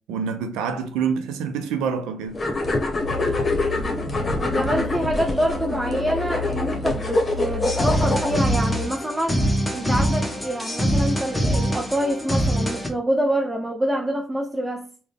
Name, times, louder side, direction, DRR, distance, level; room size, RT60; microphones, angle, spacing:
voice 1, 0.1-2.4, right 6 dB, 85° right, 0.6 m, -26 dB
sound 1, 2.3-8.6, left 2 dB, 35° left, 1.1 m, -25 dB
Musical instrument, 3.0-8.9, left 5 dB, 50° right, 0.9 m, -33 dB
voice 2, 4.3-9.5 9.7-14.9, right 1 dB, 15° right, 0.5 m, -26 dB
sound 2, 7.6-12.9, equal, 10° left, 1.1 m, -23 dB
3.8 x 2.3 x 3.4 m
supercardioid pair, 50°, 0 cm